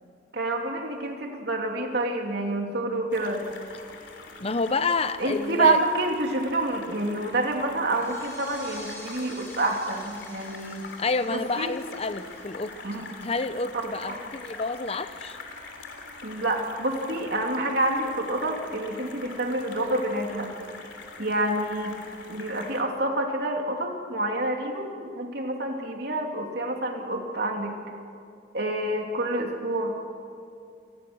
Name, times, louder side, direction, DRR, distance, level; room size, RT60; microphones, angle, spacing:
voice 1, 0.3-3.4 5.2-10.8 11.3-11.7 12.8-13.1 13.7-14.2 16.2-20.5 21.2-21.9 22.3-27.8 28.5-29.9, right 2 dB, 55° right, 2 dB, 3.1 m, -28 dB
sound 1, 3.1-22.8, left 3 dB, 70° left, 3.3 m, -44 dB
voice 2, 4.4-5.8 11.0-12.7 13.2-15.4, left 3 dB, 30° left, 12 dB, 0.8 m, -28 dB
sound 2, 7.9-13.2, equal, 15° left, 7.2 m, -49 dB
28.5 x 19.5 x 6.3 m, 2.5 s
head